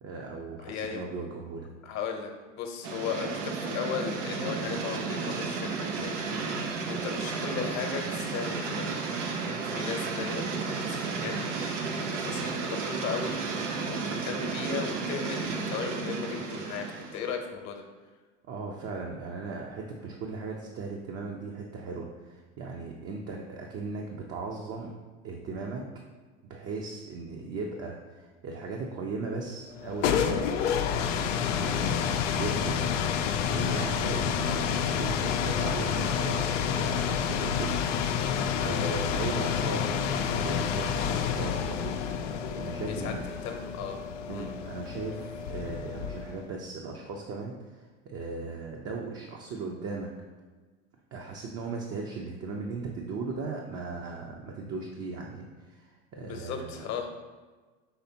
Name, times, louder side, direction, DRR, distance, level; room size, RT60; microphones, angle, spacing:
voice 1, 0.0-1.7 18.5-24.9 25.2-25.8 26.4-33.2 33.4-37.9 38.2-42.0 42.6-43.2 44.3-50.1 51.1-56.8, right 3 dB, 40° right, 0 dB, 0.7 m, -37 dB
voice 2, 0.6-1.0 1.8-9.0 9.4-11.3 12.1-13.4 13.9-17.8 39.0-39.2 42.9-43.2 43.4-43.9 44.3-44.5 56.2-57.1, left 6 dB, 50° left, 4 dB, 0.9 m, -36 dB
sound 1, 2.8-17.3, right 4 dB, 85° right, 0.6 m, -33 dB
sound 2, 29.7-46.5, left 7 dB, 80° left, 0.5 m, -29 dB
5.6 x 3.3 x 2.8 m, 1.4 s
hypercardioid pair, 80°, 36 cm